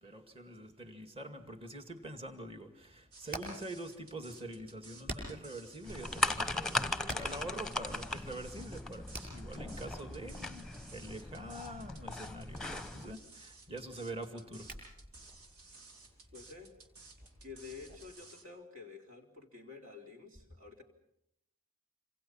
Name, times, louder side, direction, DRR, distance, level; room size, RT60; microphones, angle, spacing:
voice 1, 0.0-14.7, right 1 dB, 25° right, 7 dB, 2.1 m, -45 dB
Hammer, 2.8-18.0, right 1 dB, 45° right, 7.6 m, -51 dB
sound 1, 3.1-18.4, right 3 dB, 85° right, 3.2 m, -56 dB
sound 2, 5.8-13.1, left 1 dB, 5° left, 1.0 m, -38 dB
voice 2, 16.3-16.7 17.4-20.8, left 4 dB, 65° right, 3 dB, 3.9 m, -50 dB
27.5 x 26.5 x 5.7 m, 0.79 s
head